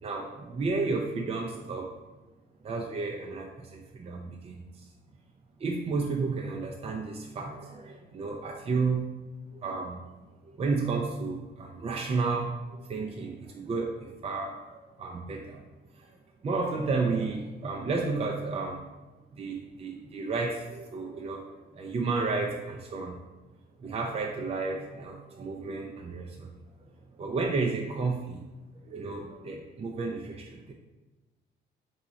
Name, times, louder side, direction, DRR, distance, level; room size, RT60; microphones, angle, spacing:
voice 1, 0.0-1.9 2.6-4.6 5.6-9.0 9.5-10.0 10.5-12.6 12.9-15.6 16.0-16.1 16.4-18.9 19.3-21.4 21.7-23.2 23.8-26.5 27.2-28.4 28.8-30.7, right 4 dB, 30° right, 1 dB, 0.5 m, -32 dB
3.6 x 2.7 x 4.0 m, 1.2 s
cardioid pair, 90°, 20 cm